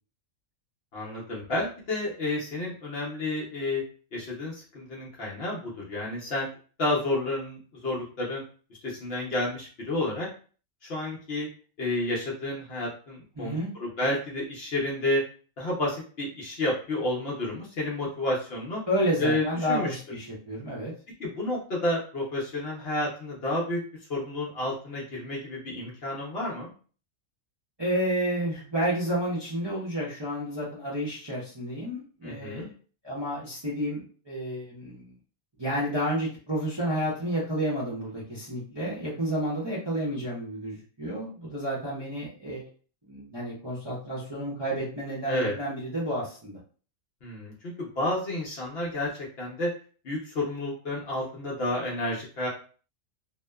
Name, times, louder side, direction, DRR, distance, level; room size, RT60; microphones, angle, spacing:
voice 1, 0.9-3.8 4.1-6.5 6.8-8.4 8.8-10.3 10.9-11.5 11.8-15.2 15.6-18.8 19.2-20.0 21.2-23.8 24.1-26.7 32.2-32.7 45.3-45.5 47.2-49.7 50.0-52.5, left 1 dB, 55° left, -3 dB, 0.8 m, -30 dB
voice 2, 13.4-13.7 18.9-20.9 27.8-32.6 33.0-35.1 35.6-42.6 43.1-46.6, equal, 30° right, -7 dB, 0.5 m, -30 dB
2.8 x 2.1 x 2.2 m, 0.40 s
omnidirectional pair, 1.4 m